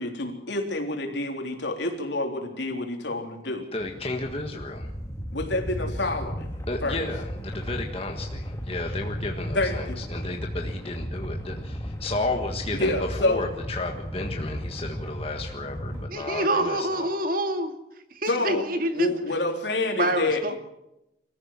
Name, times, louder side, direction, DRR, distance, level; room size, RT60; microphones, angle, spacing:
voice 1, 0.0-3.7 5.3-6.5 6.8-7.0 9.5-10.0 12.7-13.5 18.3-18.6 18.9-20.6, left 2 dB, 75° left, 3 dB, 3.7 m, -28 dB
voice 2, 3.7-4.9 6.7-12.9 13.2-17.1, left 2 dB, 30° left, 2 dB, 1.6 m, -33 dB
sound 1, 3.8-16.1, equal, 15° left, 1.9 m, -34 dB
voice 3, 15.9-17.8 18.2-19.1 20.0-20.6, right 1 dB, 50° right, 7 dB, 2.2 m, -26 dB
23.5 x 15.0 x 7.5 m, 0.87 s
head